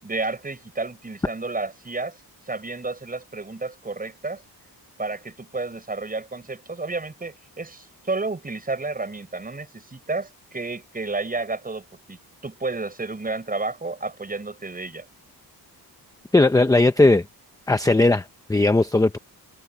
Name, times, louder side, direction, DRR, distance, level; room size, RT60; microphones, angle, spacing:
voice 1, 0.0-2.2 2.5-4.4 5.0-15.1, right 3 dB, 20° right, 6.3 m, -31 dB
voice 2, 16.3-17.2 17.7-19.2, left 2 dB, 10° left, 0.6 m, -18 dB
wide cardioid pair, 175°, 39 cm